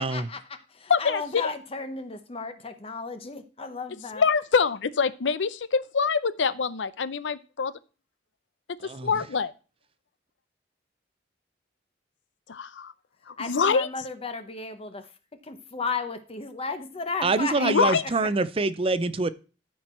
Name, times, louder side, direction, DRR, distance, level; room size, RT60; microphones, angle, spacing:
voice 1, 0.0-0.4 1.0-4.2 13.4-15.1 15.4-17.9 18.2-18.3, left 4 dB, 30° left, 8 dB, 0.8 m, -34 dB
voice 2, 0.9-1.5 4.1-7.7 9.0-9.5 12.5-12.9 13.3-13.9 17.6-18.0, left 5 dB, 80° left, 16 dB, 0.6 m, -25 dB
voice 3, 17.2-19.3, right 3 dB, 30° right, 14 dB, 0.5 m, -25 dB
13.5 x 4.6 x 4.4 m, 0.34 s
head